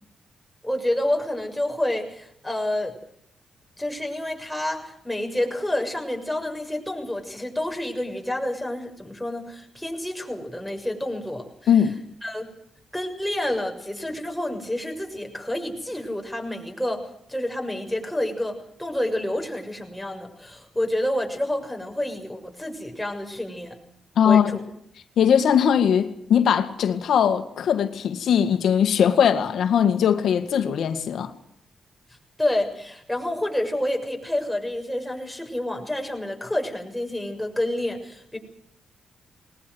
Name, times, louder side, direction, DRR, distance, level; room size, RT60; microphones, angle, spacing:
voice 1, 0.6-3.0 3.8-11.7 12.2-12.5 12.9-23.8 24.3-24.6 32.4-38.4, left 1 dB, 5° left, 7.0 m, -28 dB
voice 2, 11.7-12.0 24.2-24.6 25.2-31.3, left 8 dB, 75° left, 2.1 m, -20 dB
21.0 x 19.0 x 8.1 m
cardioid pair, 65°, 0 cm